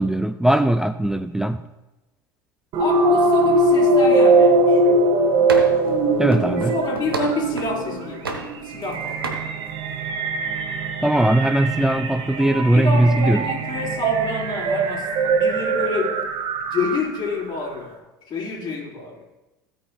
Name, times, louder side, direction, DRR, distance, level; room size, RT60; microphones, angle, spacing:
voice 1, 0.0-1.6 6.2-6.7 11.0-13.5, right 1 dB, 5° right, 9 dB, 0.4 m, -19 dB
sound 1, 2.7-17.3, right 2 dB, 50° right, 1.5 m, -21 dB
voice 2, 2.8-5.0 6.7-8.4 8.6-9.4 12.7-16.2 16.6-19.2, left 3 dB, 35° left, -6 dB, 3.7 m, -28 dB
sound 2, 5.5-5.9 6.3-7.8 8.2-8.9 9.2-9.5, right 3 dB, 90° right, 1.1 m, -31 dB
16.0 x 9.1 x 2.3 m, 1.1 s
hypercardioid pair, 75°, 12 cm